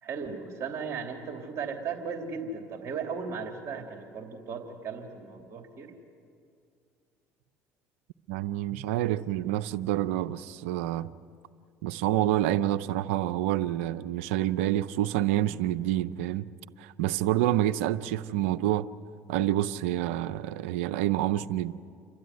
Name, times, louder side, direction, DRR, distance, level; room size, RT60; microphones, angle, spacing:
voice 1, 0.0-5.9, right 5 dB, 45° right, 2.9 m, -36 dB
voice 2, 8.3-11.1 11.8-16.5 16.8-18.9 19.3-21.7, right 13 dB, 85° right, 0.6 m, -28 dB
28.0 x 12.5 x 9.6 m
hypercardioid pair, 75°, 7 cm